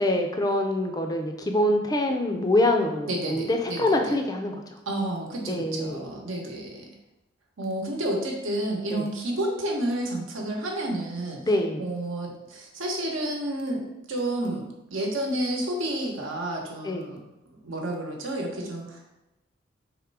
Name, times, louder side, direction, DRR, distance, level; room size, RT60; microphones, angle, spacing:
voice 1, 0.0-4.6 5.5-6.0 8.9-9.0 11.4-11.9 16.8-17.1, left 1 dB, 20° left, 4 dB, 0.4 m, -25 dB
voice 2, 3.1-4.1 4.9-7.0 7.6-11.4 11.8-17.2 17.6-19.1, right 1 dB, 85° right, 0 dB, 1.0 m, -30 dB
3.6 x 3.1 x 4.7 m, 0.96 s
head